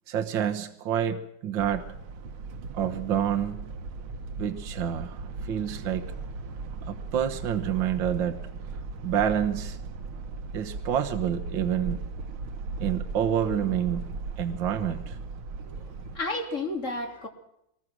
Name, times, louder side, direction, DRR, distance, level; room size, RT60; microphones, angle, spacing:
voice 1, 0.1-1.9 2.7-3.7 4.4-6.1 6.9-8.4 9.0-9.8 10.5-12.0 12.8-14.0 14.4-15.2, right 9 dB, 70° right, 5 dB, 1.9 m, -28 dB
sound 1, 1.6-16.2, right 3 dB, 90° right, 2.1 m, -37 dB
voice 2, 15.6-17.3, left 2 dB, 35° left, 2 dB, 3.6 m, -32 dB
24.0 x 20.0 x 6.2 m, 0.78 s
omnidirectional pair, 2.2 m